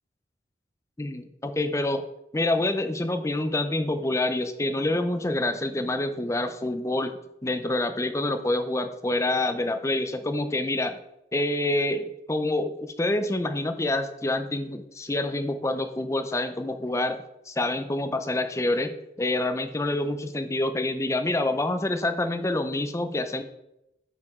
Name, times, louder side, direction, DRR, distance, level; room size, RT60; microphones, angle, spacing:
voice 1, 1.0-2.0 2.3-7.1 7.4-11.0 11.3-17.2 17.5-18.9 19.2-23.4, left 2 dB, 15° left, 8 dB, 0.5 m, -27 dB
9.3 x 4.9 x 3.6 m, 0.86 s
head